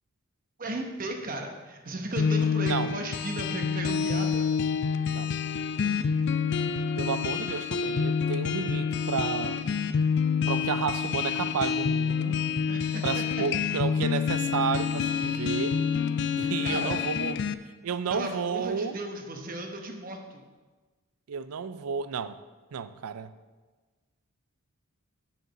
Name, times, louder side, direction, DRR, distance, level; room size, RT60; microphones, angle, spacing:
voice 1, 0.6-4.5 12.7-13.2 16.6-17.0 18.1-20.5, right 2 dB, 40° right, 0.9 m, -36 dB
sound 1, 2.2-17.5, left 6 dB, 50° left, 0.3 m, -28 dB
voice 2, 2.6-3.0 5.1-5.3 7.0-9.7 10.5-12.4 13.0-15.8 16.4-17.4 17.8-19.0 21.3-22.4 22.7-23.3, right 6 dB, 80° right, 0.4 m, -32 dB
7.9 x 5.0 x 6.5 m
head